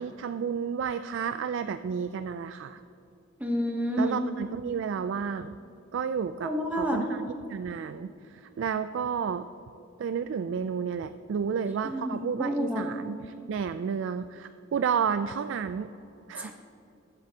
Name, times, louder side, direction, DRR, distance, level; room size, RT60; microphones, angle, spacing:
voice 1, 0.0-2.8 4.0-5.6 5.9-9.5 10.0-15.9 16.3-16.5, right 6 dB, 65° right, 11 dB, 0.3 m, -31 dB
voice 2, 3.4-4.2 6.4-7.1 11.8-13.0 16.4-16.5, equal, 10° right, 1 dB, 1.0 m, -29 dB
20.0 x 7.9 x 2.8 m, 2.8 s
head